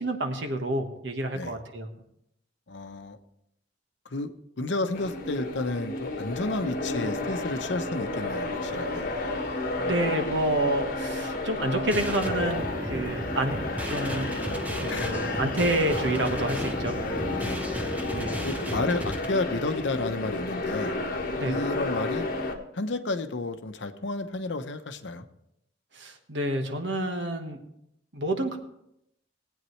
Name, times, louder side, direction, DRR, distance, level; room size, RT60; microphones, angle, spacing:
voice 1, 0.0-1.9 9.0-9.1 9.8-14.3 14.8-17.0 18.1-18.4 21.3-21.6 25.9-27.6 28.1-28.6, right 1 dB, 70° right, 5 dB, 1.4 m, -29 dB
voice 2, 2.7-3.2 4.0-4.3 4.6-9.1 14.9-15.3 17.3-17.7 18.4-20.9 21.4-22.3 22.7-25.3, left 2 dB, 70° left, 9 dB, 0.8 m, -31 dB
sound 1, 4.9-22.6, left 2 dB, 50° left, 1.4 m, -32 dB
sound 2, 11.9-19.2, equal, 10° right, 0.9 m, -34 dB
18.5 x 8.8 x 3.2 m, 0.80 s
head